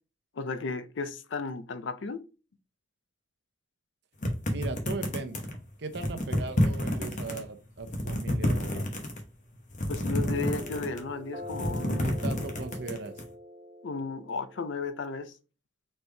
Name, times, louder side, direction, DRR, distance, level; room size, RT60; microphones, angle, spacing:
voice 1, 0.4-2.2 9.9-12.1 13.8-15.3, left 4 dB, 80° left, 0.5 m, -34 dB
sound 1, 4.2-5.6 5.9-7.4 7.8-9.2 9.7-11.1 11.4-13.2, left 1 dB, 45° left, 1.1 m, -29 dB
voice 2, 4.5-5.4 5.8-8.9 12.0-13.1, right 3 dB, 65° right, 0.7 m, -38 dB
sound 2, 10.2-15.3, left 1 dB, 45° right, 1.1 m, -44 dB
4.4 x 3.3 x 3.3 m
head